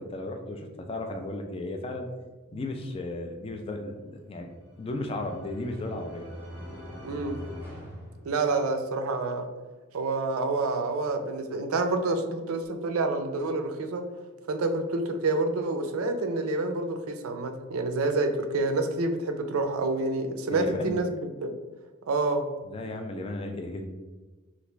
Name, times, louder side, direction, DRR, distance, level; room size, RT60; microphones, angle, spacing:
voice 1, 0.0-2.1 2.5-4.5 4.8-6.3 20.5-21.0 22.7-23.9, left 2 dB, 25° left, 4 dB, 0.3 m, -35 dB
sound 1, 4.4-8.9, equal, 10° right, 0.7 m, -43 dB
voice 2, 7.0-7.4 8.3-9.5 9.9-14.0 14.5-21.1 21.4-21.5 22.1-22.4, right 3 dB, 90° right, 6 dB, 0.4 m, -28 dB
3.2 x 2.5 x 3.0 m, 1.3 s
head